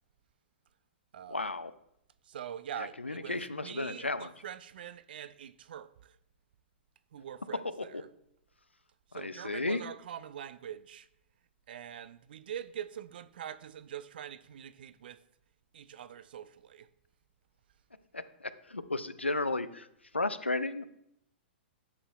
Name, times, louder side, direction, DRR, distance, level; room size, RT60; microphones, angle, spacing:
voice 1, 1.3-1.7 2.8-4.3 7.8-8.0 9.1-9.8 18.1-19.9 20.1-20.8, left 2 dB, 90° left, 0.4 m, -34 dB
voice 2, 2.3-6.2 7.1-8.0 9.1-11.1 11.7-15.2 15.7-16.9, right 9 dB, 55° right, 0.3 m, -44 dB
8.2 x 5.6 x 2.3 m
figure-of-eight pair, 110°, 6 cm